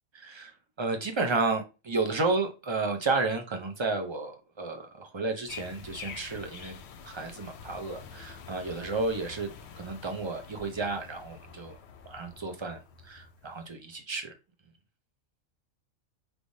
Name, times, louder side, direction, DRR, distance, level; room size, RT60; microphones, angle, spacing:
voice 1, 0.1-6.8 7.0-11.8 12.1-14.3, right 3 dB, 35° right, 0.4 m, -32 dB
sound 1, 5.5-13.7, left 6 dB, 65° left, 0.8 m, -47 dB
4.7 x 3.4 x 2.7 m
omnidirectional pair, 1.4 m